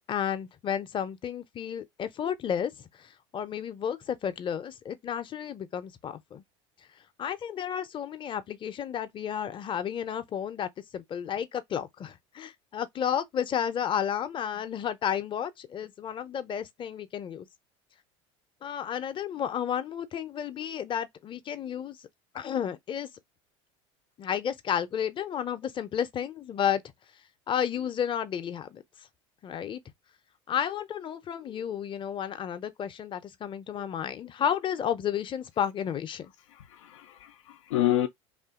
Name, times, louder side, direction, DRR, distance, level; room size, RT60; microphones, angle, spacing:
voice 1, 0.1-2.7 3.0-6.4 7.2-17.5 18.6-22.0 22.3-23.1 24.2-26.8 27.5-28.8 29.4-29.8 30.5-36.3, left 9 dB, 30° left, 0.6 m, -32 dB
voice 2, 36.5-38.1, left 13 dB, 85° left, 0.5 m, -29 dB
2.7 x 2.5 x 3.6 m
hypercardioid pair, 85°, 16 cm